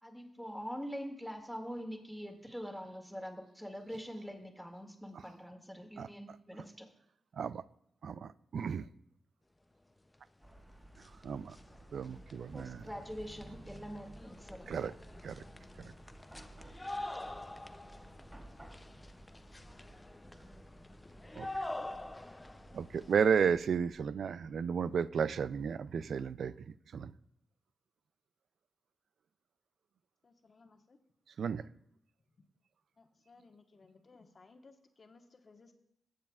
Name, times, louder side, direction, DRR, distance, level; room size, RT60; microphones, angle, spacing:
voice 1, 0.0-6.9 12.5-14.7, equal, ahead, 2.1 m, -44 dB
voice 2, 8.0-8.8 11.2-11.6 11.9-12.8 14.7-14.9 15.2-15.4 15.8-15.9 21.4-21.5 22.7-26.5 26.9-27.1 31.4-31.6, right 7 dB, 75° right, 0.3 m, -33 dB
sound 1, 10.4-10.5 10.8-23.5, left 1 dB, 20° left, 0.5 m, -47 dB
Chatter / Car passing by / Traffic noise roadway noise, 10.4-24.7, right 1 dB, 20° right, 3.1 m, -56 dB
voice 3, 30.2-31.0 33.0-35.7, left 3 dB, 50° left, 1.2 m, -60 dB
19.0 x 7.4 x 2.4 m
supercardioid pair, 45°, 0 cm